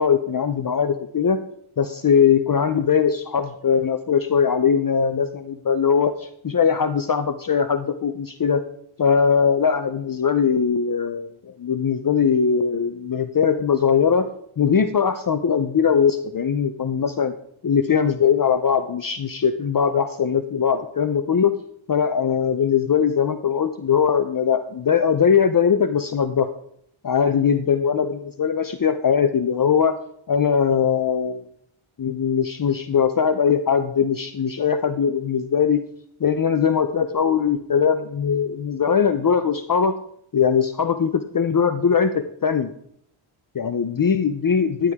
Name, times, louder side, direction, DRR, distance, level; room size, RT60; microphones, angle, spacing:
voice 1, 0.0-1.4 1.8-8.6 9.0-11.3 11.6-14.3 14.6-17.3 17.6-21.5 21.9-26.5 27.0-29.9 30.3-31.5 32.0-35.8 36.2-40.0 40.3-42.7 43.5-44.9, left 7 dB, 40° left, 8 dB, 0.7 m, -20 dB
12.5 x 10.0 x 3.6 m, 0.69 s
wide cardioid pair, 135°, 50 cm